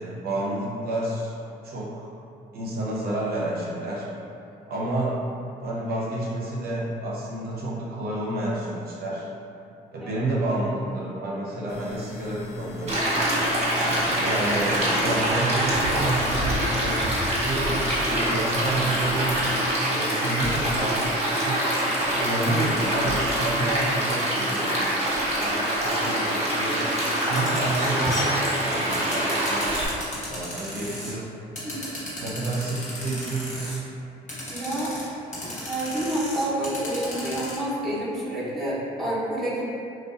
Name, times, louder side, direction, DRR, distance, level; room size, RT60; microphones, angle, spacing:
voice 1, 0.0-1.3 1.6-2.1 2.5-4.1 4.7-5.2 5.6-9.3 9.9-13.1 13.8-19.4 19.9-21.0 21.4-21.6 22.1-26.8 27.2-29.7 30.3-31.3 31.8-33.9, right 2 dB, 55° right, -6 dB, 0.6 m, -30 dB
sound 1, 11.7-19.6, left 3 dB, 60° left, 0.4 m, -37 dB
Stream, 12.9-29.9, right 1 dB, 35° right, 0.9 m, -25 dB
sound 2, 27.2-31.1 31.6-33.8 34.3-35.1 35.3-37.6, left 1 dB, 40° left, 1.0 m, -34 dB
voice 2, 34.5-34.9 35.4-39.6, right 1 dB, ahead, -10 dB, 0.8 m, -28 dB
2.5 x 2.2 x 2.4 m, 2.6 s
supercardioid pair, 65°, 19 cm